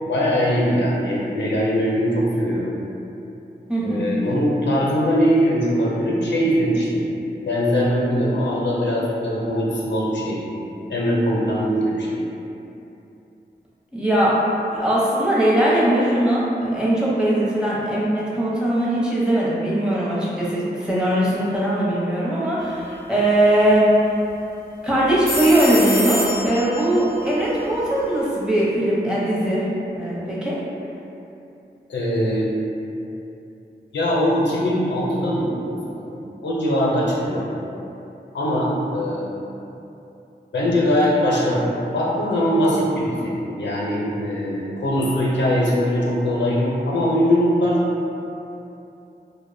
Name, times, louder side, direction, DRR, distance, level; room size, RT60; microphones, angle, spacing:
voice 1, 0.0-2.7 3.8-7.1 7.4-10.5 10.9-12.2 31.9-32.5 33.9-35.5 35.9-36.1 36.4-37.5 38.3-39.3 40.5-47.8, equal, 85° left, -5 dB, 0.5 m, -21 dB
voice 2, 3.7-4.1 13.9-14.3 14.7-23.9 24.8-29.6 29.9-30.6, right 1 dB, 5° right, -7 dB, 0.6 m, -20 dB
sound 1, 22.6-22.9 23.1-23.2 25.0-28.2, left 1 dB, 55° right, 0.7 m, -29 dB
2.5 x 2.0 x 2.5 m, 2.8 s
cardioid pair, 50°, 18 cm